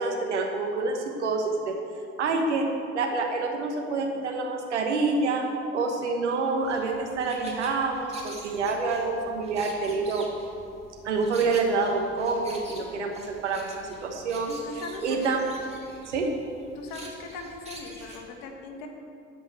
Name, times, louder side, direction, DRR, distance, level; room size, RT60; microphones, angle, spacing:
voice 1, 0.0-1.7 2.2-2.7 2.9-5.4 5.7-10.3 11.0-14.5 15.0-15.4 16.1-16.3, right 3 dB, 85° right, 2 dB, 1.3 m, -27 dB
sound 1, 6.6-18.2, right 2 dB, 20° right, 2.6 m, -47 dB
voice 2, 14.5-15.4 16.7-18.9, left 3 dB, 70° left, 3 dB, 1.6 m, -40 dB
13.0 x 5.7 x 7.9 m, 2.5 s
hypercardioid pair, 55°, 34 cm